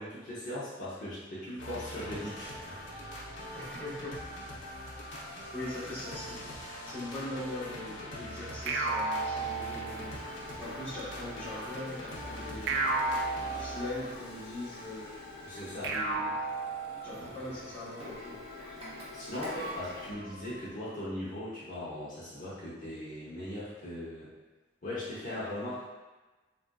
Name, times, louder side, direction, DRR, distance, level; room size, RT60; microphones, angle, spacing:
voice 1, 0.0-2.8 15.4-16.0 19.1-24.3 24.8-25.9, left 1 dB, 45° left, -10 dB, 0.8 m, -39 dB
sound 1, 1.6-20.7, equal, 80° left, 0.6 m, -44 dB
voice 2, 3.5-4.2 4.9-5.1 5.5-6.5 6.8-12.8 13.4-15.1 15.9-16.4 17.0-18.4, left 1 dB, 10° left, -12 dB, 1.1 m, -41 dB
Printer, 7.6-20.1, left 1 dB, 35° right, 0.7 m, -48 dB
sound 2, 8.7-10.3 12.7-14.3 15.8-17.3, right 3 dB, 65° right, 0.3 m, -33 dB
3.5 x 2.5 x 2.2 m, 1.2 s
head